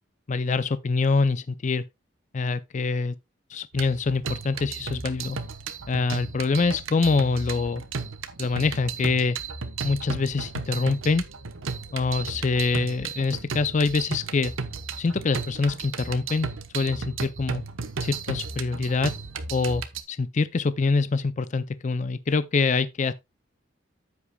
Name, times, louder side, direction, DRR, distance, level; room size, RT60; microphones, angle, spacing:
voice 1, 0.3-1.8 2.3-3.1 3.5-5.4 5.9-7.8 8.4-9.4 9.8-11.2 11.9-14.5 15.0-16.5 16.7-17.6 18.0-19.1 19.5-23.1, left 4 dB, 35° left, 0.4 m, -25 dB
sound 1, 3.7-20.0, right 4 dB, 80° right, 0.9 m, -34 dB
9.8 x 8.2 x 2.3 m
head